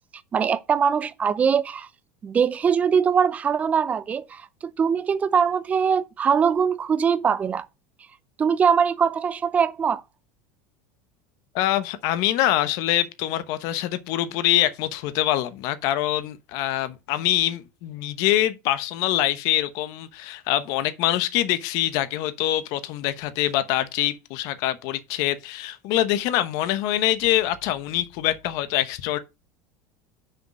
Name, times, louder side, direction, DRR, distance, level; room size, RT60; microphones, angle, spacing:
voice 1, 0.3-1.9 2.2-7.7 8.4-10.0, right 6 dB, 20° right, 0.6 m, -22 dB
voice 2, 11.5-29.2, left 13 dB, 55° left, 0.9 m, -24 dB
6.3 x 5.1 x 6.2 m
cardioid pair, 160°, 8 cm